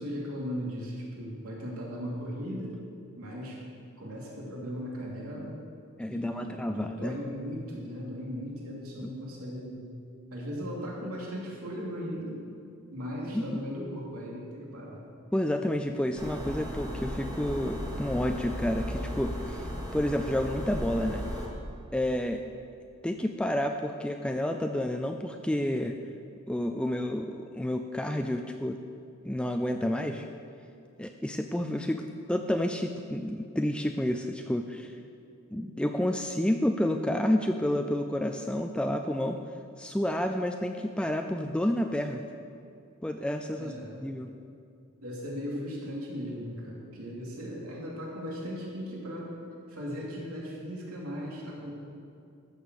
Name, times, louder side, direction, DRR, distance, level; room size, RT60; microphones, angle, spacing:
voice 1, 0.0-2.8 3.2-3.6 4.0-5.6 6.1-9.9 10.3-12.4 12.9-15.0 43.5-44.0 45.0-49.3 49.7-51.7, equal, 80° right, -4 dB, 2.8 m, -37 dB
voice 2, 6.0-7.2 9.0-9.1 13.3-13.4 15.3-21.2 21.9-22.4 23.0-26.0 26.5-28.8 29.2-30.3 31.0-35.0 35.5-39.4 39.8-42.2 43.0-43.7 44.0-44.3, left 1 dB, 5° left, 5 dB, 0.3 m, -30 dB
sound 1, 16.2-21.5, equal, 15° right, 1.6 m, -36 dB
14.5 x 7.1 x 6.5 m, 2.5 s
head